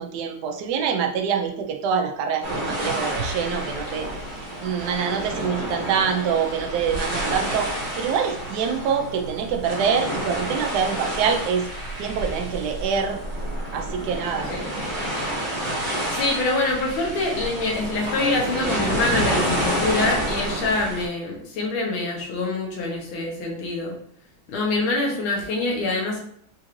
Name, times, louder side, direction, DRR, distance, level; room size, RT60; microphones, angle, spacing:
voice 1, 0.0-4.1 4.6-11.7 12.0-13.2 13.7-14.5, right 7 dB, 70° right, 3 dB, 1.0 m, -25 dB
sound 1, 2.4-21.1, right 1 dB, 45° right, 0.6 m, -29 dB
voice 2, 16.1-24.0 24.5-26.2, left 2 dB, 85° left, -1 dB, 1.7 m, -25 dB
4.4 x 2.5 x 3.0 m, 0.66 s
omnidirectional pair, 2.2 m